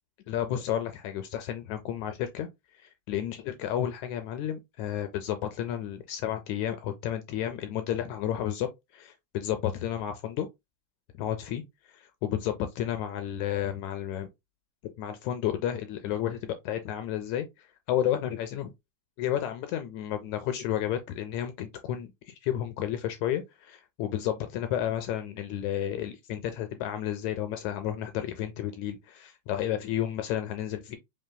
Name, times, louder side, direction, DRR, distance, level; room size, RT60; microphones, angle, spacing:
voice 1, 0.3-2.5 2.7-10.5 11.2-14.3 14.8-18.7 19.2-31.0, left 11 dB, 80° left, 1.7 m, -32 dB
5.5 x 3.0 x 2.2 m
omnidirectional pair, 3.6 m